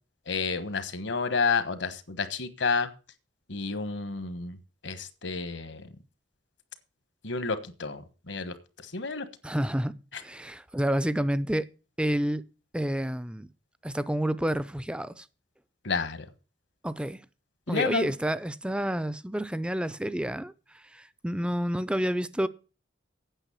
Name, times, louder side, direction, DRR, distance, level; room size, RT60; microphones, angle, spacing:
voice 1, 0.3-2.9 3.5-4.6 4.8-5.8 7.2-8.5 8.9-9.2 15.8-16.2 17.7-18.1, left 4 dB, 70° left, 1.3 m, -30 dB
voice 2, 9.4-9.9 10.2-11.7 12.0-12.4 12.7-13.5 13.8-15.3 16.8-17.2 17.7-20.5 20.9-22.5, right 1 dB, 5° right, 0.5 m, -29 dB
9.0 x 6.3 x 8.6 m
head